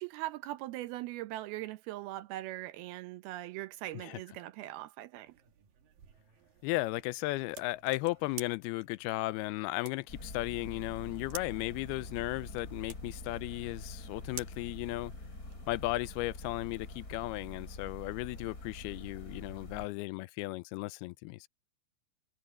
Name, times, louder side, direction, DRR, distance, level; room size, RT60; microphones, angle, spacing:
voice 1, 0.0-5.3, right 16 dB, 80° right, 2.7 m, -40 dB
sound 1, 5.3-15.6, right 8 dB, 65° right, 3.6 m, -52 dB
voice 2, 6.6-15.1 15.7-21.5, left 20 dB, 85° left, 2.5 m, -35 dB
sound 2, 10.1-19.9, left 2 dB, 20° left, 6.0 m, -45 dB
omnidirectional pair, 4.5 m